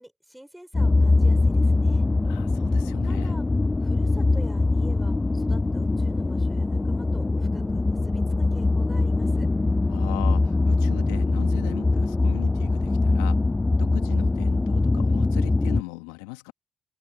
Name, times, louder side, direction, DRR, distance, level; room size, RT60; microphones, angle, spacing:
voice 1, 0.0-2.1 3.0-3.4 3.8-9.5, equal, 5° right, 6.9 m, -47 dB
sound 1, 0.7-15.8, left 3 dB, 25° left, 1.0 m, -22 dB
voice 2, 2.3-3.3 9.9-13.4 13.8-16.5, left 25 dB, 80° left, 2.1 m, -39 dB
hypercardioid pair, 45°, 0 cm